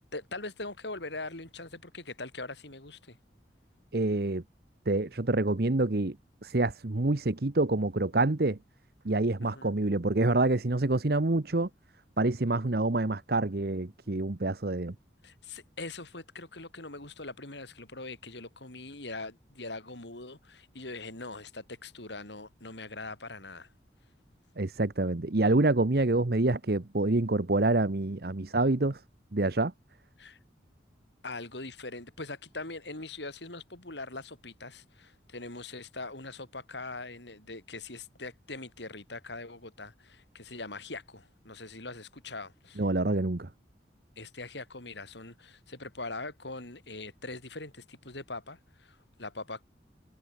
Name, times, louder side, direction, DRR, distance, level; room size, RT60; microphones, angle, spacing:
voice 1, 0.1-3.2 9.4-9.7 15.2-23.7 30.2-30.4 31.2-42.9 44.2-49.6, left 3 dB, 75° left, 5.0 m, -42 dB
voice 2, 3.9-4.4 4.9-6.1 6.4-8.6 9.0-11.7 12.2-14.9 24.6-29.0 29.3-29.7 42.8-43.5, right 2 dB, 55° right, 1.0 m, -27 dB
head